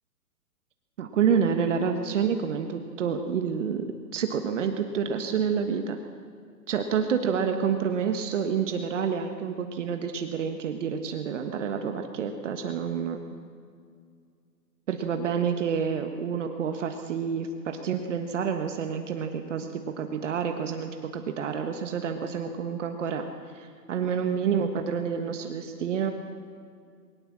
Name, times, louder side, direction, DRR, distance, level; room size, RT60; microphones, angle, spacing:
voice 1, 1.0-3.9 4.1-6.0 6.7-13.2 14.9-23.2 23.5-26.1, right 7 dB, 45° right, 6 dB, 1.5 m, -28 dB
21.5 x 18.5 x 7.5 m, 2.2 s
hypercardioid pair, 160°, 50 cm